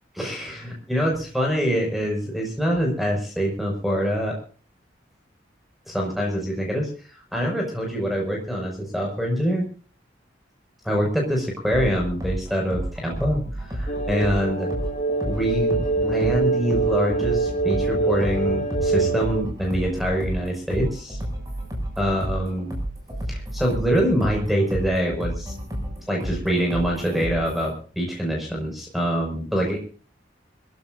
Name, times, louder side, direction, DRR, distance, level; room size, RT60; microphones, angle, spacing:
voice 1, 0.1-4.3 5.9-9.7 10.8-14.7 15.2-21.2 22.0-22.7 23.3-25.5 26.1-29.8, equal, ahead, 0 dB, 5.9 m, -25 dB
sound 1, 11.7-27.7, equal, 20° right, 7.2 m, -32 dB
sound 2, 13.9-19.4, right 3 dB, 35° left, 2.0 m, -24 dB
25.5 x 16.0 x 2.7 m, 0.39 s
head